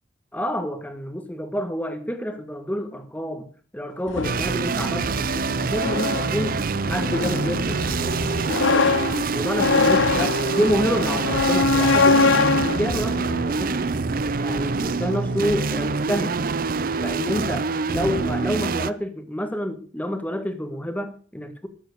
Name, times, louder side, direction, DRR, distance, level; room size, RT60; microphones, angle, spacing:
voice 1, 0.3-6.6 6.9-8.9 9.3-13.8 14.4-16.4 17.0-21.7, equal, 10° left, 8 dB, 1.7 m, -28 dB
sound 1, 4.1-14.0, left 4 dB, 90° left, 1.0 m, -24 dB
sound 2, 4.2-18.9, right 4 dB, 50° right, 0.6 m, -25 dB
13.0 x 9.7 x 6.8 m, 0.43 s
head